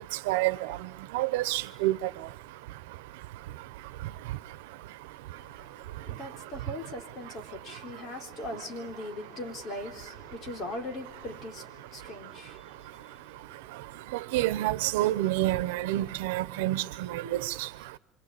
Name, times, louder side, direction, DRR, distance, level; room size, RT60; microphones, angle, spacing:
voice 1, 0.3-0.8 1.1-2.0 14.3-17.7, right 16 dB, 90° right, 1.2 m, -28 dB
voice 2, 5.3-14.0, left 1 dB, 30° left, 3.8 m, -41 dB
26.5 x 26.0 x 8.6 m
cardioid pair, 175°, 0 cm